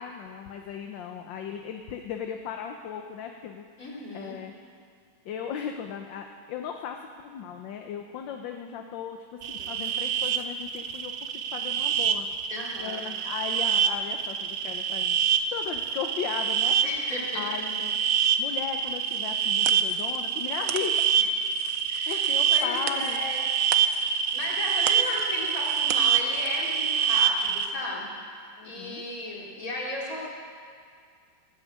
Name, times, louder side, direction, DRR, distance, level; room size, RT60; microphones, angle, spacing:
voice 1, 0.0-3.9 4.1-4.5 5.2-7.0 7.2-12.3 12.8-16.8 17.3-18.0 18.4-21.0 22.1-23.2 28.6-29.0, left 8 dB, 75° left, 4 dB, 1.5 m, -36 dB
voice 2, 3.8-4.4 12.5-13.0 16.8-17.5 21.2-21.3 21.9-22.2 22.5-23.4 24.3-28.1 28.6-30.3, left 1 dB, 45° left, -4 dB, 3.6 m, -35 dB
sound 1, 9.4-27.7, right 7 dB, 90° right, 0.6 m, -26 dB
sound 2, 19.0-26.6, right 9 dB, 65° right, 0.8 m, -40 dB
18.0 x 8.8 x 8.6 m, 2.2 s
omnidirectional pair, 2.1 m